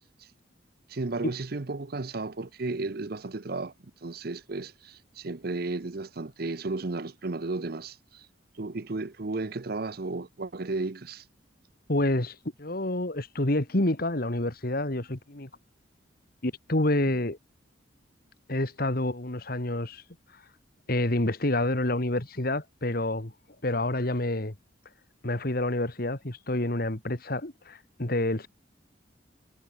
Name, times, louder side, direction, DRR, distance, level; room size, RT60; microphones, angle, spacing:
voice 1, 0.9-8.3 8.5-11.2, right 3 dB, 55° right, 0.8 m, -34 dB
voice 2, 11.9-15.5 16.4-17.4 18.5-20.0 20.9-23.3 23.6-24.6 25.2-28.5, left 1 dB, 50° left, 2.0 m, -28 dB
head